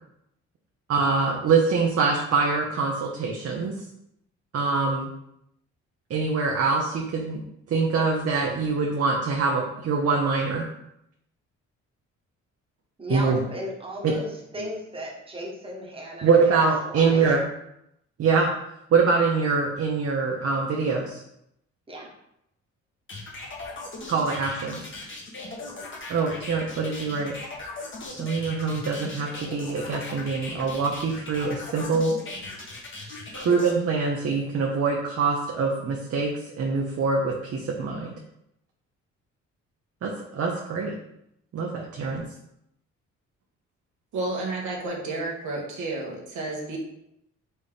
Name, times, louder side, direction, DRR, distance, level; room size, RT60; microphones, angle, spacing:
voice 1, 0.9-3.7 4.5-5.1 6.1-7.4 7.7-10.6 13.1-13.4 14.0-14.1 16.2-17.4 18.2-18.5 18.9-21.2 24.1-24.9 26.1-27.3 28.2-32.1 33.3-38.1 40.0-40.9 41.5-42.2, right 4 dB, 50° right, -1 dB, 0.8 m, -24 dB
voice 2, 13.0-16.4 16.9-17.3 21.9-22.1, equal, 20° right, -2 dB, 1.2 m, -35 dB
sound 1, 23.1-33.7, left 2 dB, 40° left, 1.3 m, -38 dB
voice 3, 44.1-46.8, right 2 dB, 75° right, -1 dB, 1.3 m, -31 dB
4.2 x 3.5 x 3.5 m, 0.79 s
cardioid pair, 90°, 30 cm